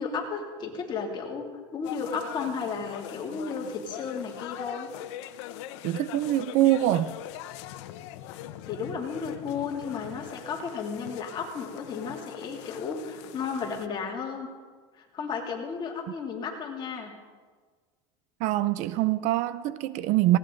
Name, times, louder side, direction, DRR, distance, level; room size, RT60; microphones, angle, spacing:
voice 1, 0.0-1.5 1.7-4.9 8.7-14.5 15.0-17.1, left 5 dB, 30° left, 2.8 m, -33 dB
sound 1, 1.8-13.9, left 13 dB, 80° left, 0.9 m, -42 dB
voice 2, 5.8-7.1 18.4-20.4, right 14 dB, 55° right, 0.6 m, -24 dB
19.0 x 17.5 x 3.9 m
cardioid pair, 145°, 15 cm